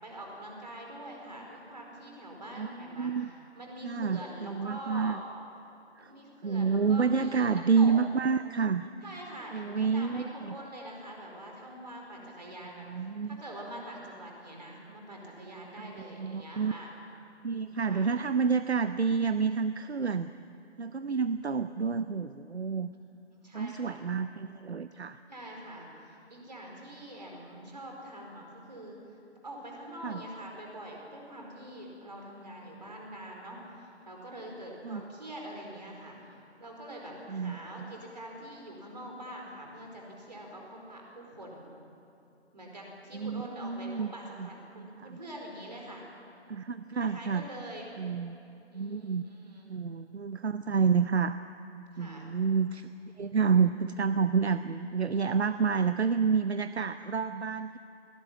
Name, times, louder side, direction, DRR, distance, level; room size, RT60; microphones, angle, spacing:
voice 1, 0.0-5.2 6.0-7.5 7.8-7.9 9.0-12.8 13.3-16.9 17.9-18.1 23.3-24.0 25.3-29.0 29.4-41.7 42.5-46.0 47.0-47.9 48.7-49.7 51.9-52.3, right 1 dB, 35° right, 0 dB, 4.7 m, -44 dB
voice 2, 2.9-3.3 3.8-5.2 6.0-6.1 6.4-8.9 9.5-10.6 12.9-13.4 15.8-15.9 16.2-16.7 17.4-20.3 20.8-22.9 23.5-25.2 30.0-30.2 34.8-35.0 37.3-37.9 43.1-44.1 44.4-44.5 44.8-45.2 46.5-47.4 48.0-48.4 48.7-49.2 49.7-51.4 52.0-52.9 53.2-57.8, right 5 dB, 65° right, 11 dB, 0.7 m, -29 dB
20.5 x 18.0 x 8.8 m, 2.7 s
figure-of-eight pair, 180°, 35 cm